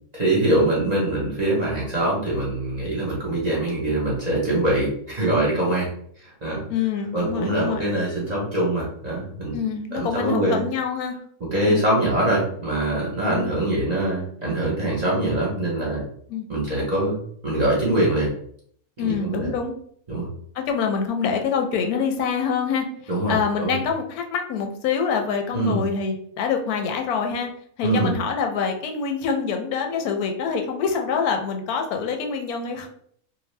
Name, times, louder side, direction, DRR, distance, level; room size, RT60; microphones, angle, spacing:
voice 1, 0.1-5.9 6.2-6.6 7.1-9.6 9.9-10.6 11.5-16.0 16.5-18.3 19.0-19.5 20.1-20.3 23.1-23.8 25.5-25.8 27.8-28.1, right 1 dB, 40° right, -5 dB, 0.7 m, -23 dB
voice 2, 6.7-7.9 9.5-11.1 11.7-11.9 13.3-13.5 16.3-16.4 19.0-19.7 20.5-22.9 23.3-27.5 27.8-32.9, left 6 dB, 90° left, 4 dB, 1.1 m, -25 dB
2.7 x 2.1 x 3.1 m, 0.63 s
omnidirectional pair, 1.5 m